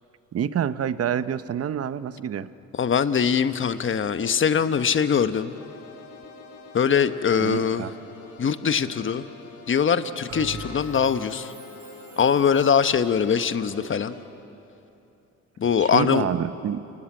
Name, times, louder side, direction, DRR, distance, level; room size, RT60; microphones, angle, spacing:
voice 1, 0.3-2.5 7.4-7.9 15.8-16.8, right 9 dB, 55° right, 14 dB, 0.9 m, -27 dB
voice 2, 2.7-5.5 6.7-7.9 8.4-9.3 9.7-11.5 12.2-14.2 15.6-16.3, left 7 dB, 40° left, 11 dB, 1.1 m, -22 dB
sound 1, 5.5-14.2, left 2 dB, 90° left, 3.2 m, -46 dB
Bell, 10.3-13.1, right 3 dB, 75° right, 5.5 m, -42 dB
29.0 x 20.0 x 9.0 m, 2.8 s
cardioid pair, 90°, 30 cm